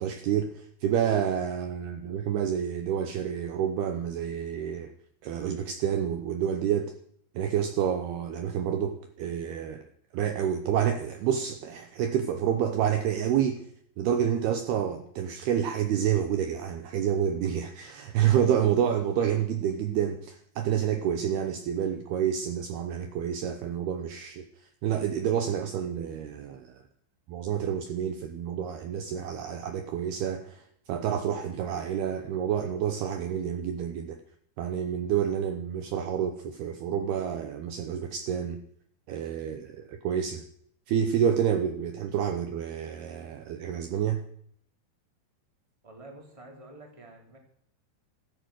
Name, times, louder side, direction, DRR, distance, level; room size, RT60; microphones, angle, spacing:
voice 1, 0.0-4.9 5.2-6.9 7.4-9.8 10.1-13.6 14.0-24.5 24.8-26.8 27.3-34.2 34.6-38.6 39.1-40.4 40.9-44.2, right 9 dB, 70° right, 7 dB, 2.7 m, -28 dB
voice 2, 45.8-47.4, right 2 dB, 10° right, 2 dB, 3.0 m, -48 dB
15.5 x 14.0 x 6.4 m, 0.65 s
omnidirectional pair, 5.4 m